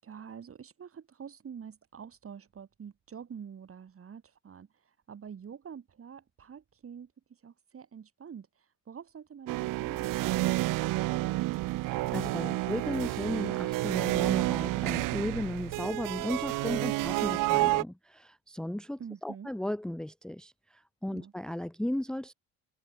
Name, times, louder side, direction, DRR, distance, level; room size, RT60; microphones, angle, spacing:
voice 1, 0.0-4.7 5.1-7.1 7.4-8.5 8.9-11.5 19.0-19.5 21.1-21.3, right 7 dB, 45° right, 5.8 m, -46 dB
sound 1, 9.5-17.8, right 19 dB, 75° right, 1.1 m, -30 dB
voice 2, 11.9-22.3, left 1 dB, ahead, 0.8 m, -35 dB
supercardioid pair, 85°, 32 cm